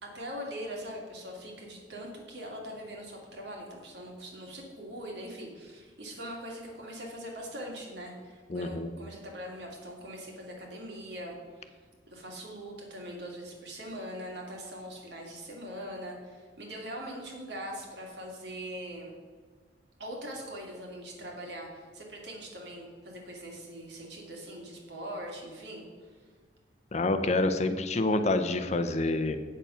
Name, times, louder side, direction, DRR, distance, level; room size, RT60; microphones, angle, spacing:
voice 1, 0.0-11.8 12.1-19.1 20.0-25.9 26.1-26.2, equal, 65° right, -1 dB, 2.4 m, -42 dB
voice 2, 8.5-8.9 26.9-29.4, left 2 dB, 35° left, 9 dB, 0.6 m, -27 dB
8.6 x 7.4 x 5.6 m, 1.5 s
head